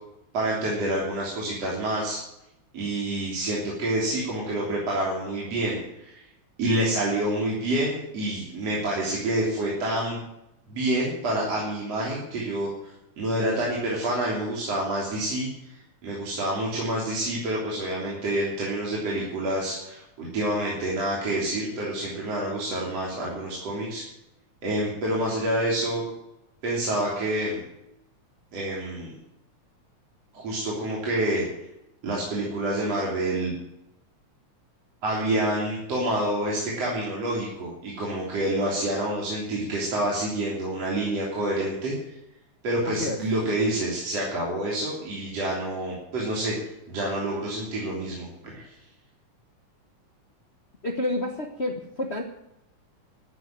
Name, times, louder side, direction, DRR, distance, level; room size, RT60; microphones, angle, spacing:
voice 1, 0.3-2.2 2.7-6.2 6.6-10.2 10.7-24.0 24.6-26.0 26.6-27.6 28.5-29.1 30.3-31.4 32.0-33.5 35.0-41.9 42.6-46.6 46.9-48.7, right 1 dB, 55° right, -4 dB, 4.5 m, -28 dB
voice 2, 42.8-43.2 50.8-52.2, left 1 dB, 50° left, 4 dB, 0.7 m, -29 dB
14.0 x 9.5 x 9.1 m, 0.86 s
omnidirectional pair, 3.3 m